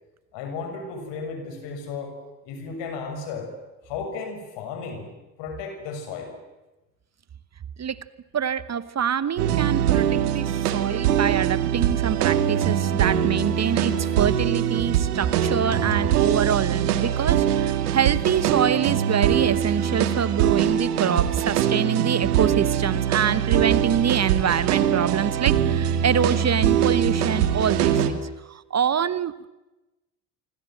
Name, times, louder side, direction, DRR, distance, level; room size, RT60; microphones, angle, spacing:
voice 1, 0.3-2.2 2.4-3.5 3.8-5.1 5.4-6.3 17.5-17.6, left 4 dB, 70° left, 5 dB, 7.0 m, -34 dB
voice 2, 8.3-28.2 28.5-29.5, right 8 dB, 35° right, 17 dB, 1.2 m, -25 dB
sound 1, 9.4-28.1, right 10 dB, 85° right, 2.0 m, -22 dB
26.5 x 24.5 x 7.8 m, 1.0 s
hypercardioid pair, 55°, 45 cm